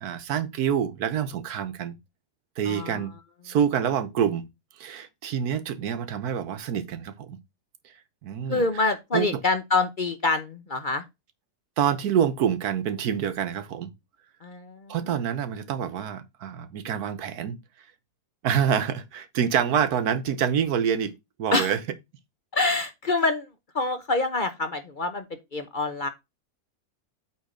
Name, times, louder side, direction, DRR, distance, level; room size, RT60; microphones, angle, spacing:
voice 1, 0.0-2.0 2.6-3.1 3.4-4.4 4.8-7.4 8.2-9.4 11.8-13.9 14.9-17.6 18.4-21.1 21.4-21.8, right 8 dB, 80° right, 1.4 m, -26 dB
voice 2, 2.7-3.0 8.5-11.0 14.4-14.8 15.1-15.3 21.5-21.7 22.5-23.5 23.7-25.2 25.5-26.1, left 3 dB, 40° left, 0.9 m, -26 dB
8.4 x 3.6 x 5.0 m
omnidirectional pair, 1.6 m